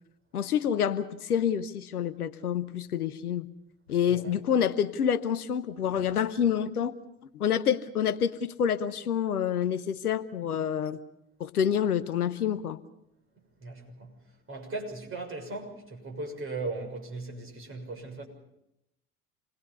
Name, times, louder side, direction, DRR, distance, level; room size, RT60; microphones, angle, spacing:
voice 1, 0.3-3.5 3.9-6.9 7.3-11.0 11.4-12.8, left 8 dB, 80° left, 1.0 m, -27 dB
voice 2, 13.6-14.2 14.5-18.3, right 2 dB, 30° right, 6.5 m, -38 dB
27.5 x 20.5 x 5.4 m
figure-of-eight pair, 70°, 45 cm